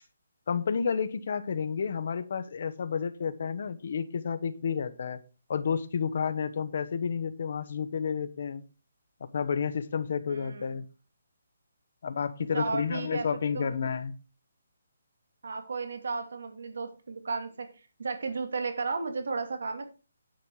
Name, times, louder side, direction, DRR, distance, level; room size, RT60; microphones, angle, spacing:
voice 1, 0.5-5.2 5.5-8.6 9.3-10.8 12.0-14.2, left 6 dB, 45° left, 12 dB, 1.1 m, -31 dB
voice 2, 10.3-10.8 12.5-13.3 13.5-13.7 15.4-17.7 18.0-19.8, right 4 dB, 65° right, 6 dB, 2.6 m, -34 dB
10.5 x 7.7 x 4.8 m, 0.33 s
hypercardioid pair, 175°, 0 cm